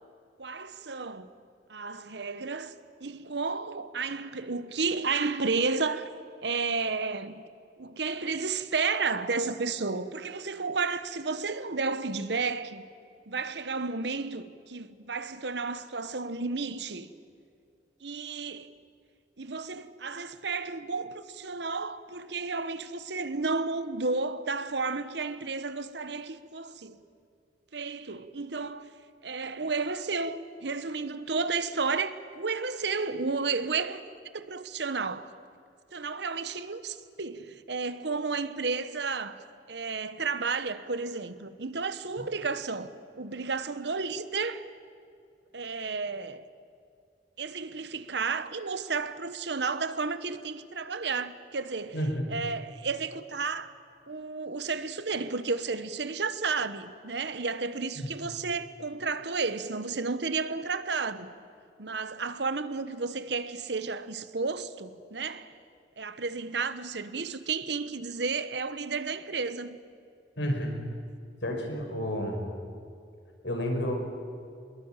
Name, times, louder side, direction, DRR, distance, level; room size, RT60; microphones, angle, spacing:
voice 1, 0.4-1.3 1.7-2.7 3.0-6.1 6.4-7.4 7.8-12.9 13.3-17.1 18.0-18.7 19.4-27.0 27.7-28.8 29.2-34.0 34.3-35.3 35.9-44.6 45.5-46.4 47.4-52.0 52.3-53.7 54.1-61.3 61.8-65.5 66.0-69.8, right 4 dB, 65° right, 1.1 m, -32 dB
voice 2, 51.9-52.3 58.0-58.1 70.4-70.7 71.4-72.4 73.4-73.9, equal, 75° left, 5.4 m, -30 dB
23.5 x 21.5 x 9.0 m
head